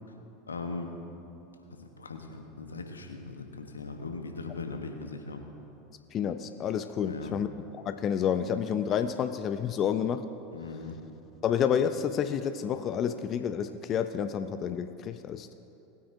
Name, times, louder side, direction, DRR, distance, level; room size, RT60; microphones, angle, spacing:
voice 1, 0.5-0.9 1.7-5.4 7.0-7.3 10.5-11.0, left 3 dB, 90° left, 5 dB, 1.0 m, -39 dB
voice 2, 6.1-7.5 7.9-10.2 11.4-15.5, left 8 dB, 40° left, 10 dB, 0.5 m, -29 dB
19.5 x 9.3 x 2.7 m, 3.0 s
hypercardioid pair, 85°, 0 cm